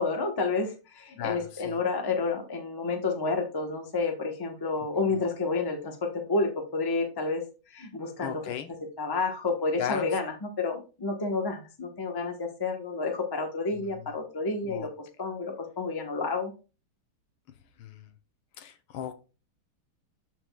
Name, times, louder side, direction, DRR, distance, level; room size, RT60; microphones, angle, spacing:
voice 1, 0.0-7.4 7.7-8.4 9.0-16.5, left 3 dB, 20° left, 0.5 m, -30 dB
voice 2, 1.2-1.8 8.2-8.7 9.8-10.1 13.7-14.1 14.6-14.9 17.8-18.1 18.6-19.3, left 9 dB, 75° left, 1.6 m, -37 dB
12.5 x 4.4 x 2.3 m
omnidirectional pair, 2.3 m